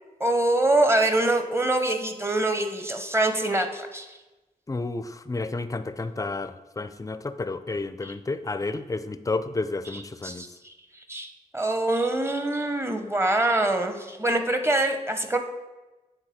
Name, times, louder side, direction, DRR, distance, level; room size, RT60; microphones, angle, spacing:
voice 1, 0.2-4.2 8.0-8.1 9.9-10.7 11.1-15.4, right 2 dB, 15° right, 7 dB, 0.8 m, -25 dB
voice 2, 4.7-10.4, left 3 dB, 20° left, 12 dB, 0.4 m, -31 dB
8.9 x 3.9 x 4.3 m, 1.1 s
cardioid pair, 55°, 15 cm